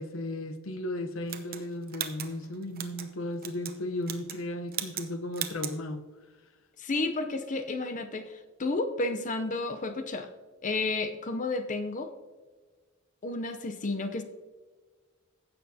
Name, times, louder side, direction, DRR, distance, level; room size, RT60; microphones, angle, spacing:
voice 1, 0.0-6.0, left 1 dB, 75° left, 0.9 m, -35 dB
sound 1, 1.3-3.1 3.4-3.8 4.0-4.4 4.7-5.1 5.3-5.8, right 10 dB, 45° right, 0.8 m, -37 dB
voice 2, 6.8-10.3 10.6-12.1 13.2-14.2, left 3 dB, 40° left, 0.6 m, -31 dB
16.0 x 6.8 x 2.8 m
head